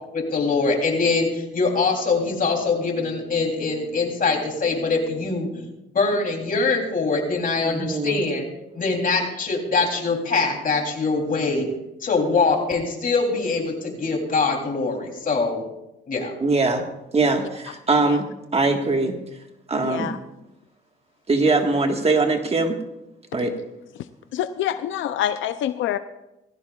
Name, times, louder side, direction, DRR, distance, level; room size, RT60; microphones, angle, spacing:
voice 1, 0.1-5.7 5.9-8.5 8.7-11.7 12.0-15.6 16.1-16.3, left 4 dB, 45° left, 2 dB, 3.3 m, -23 dB
voice 2, 7.6-8.2 16.4-16.8 17.1-18.2 18.5-19.2 19.7-20.1 21.3-22.7 23.3-23.5, right 3 dB, 30° right, 4 dB, 1.6 m, -21 dB
voice 3, 19.8-20.2 24.3-26.0, left 11 dB, 75° left, 11 dB, 0.5 m, -26 dB
18.0 x 15.5 x 2.4 m, 0.91 s
cardioid pair, 90°, 20 cm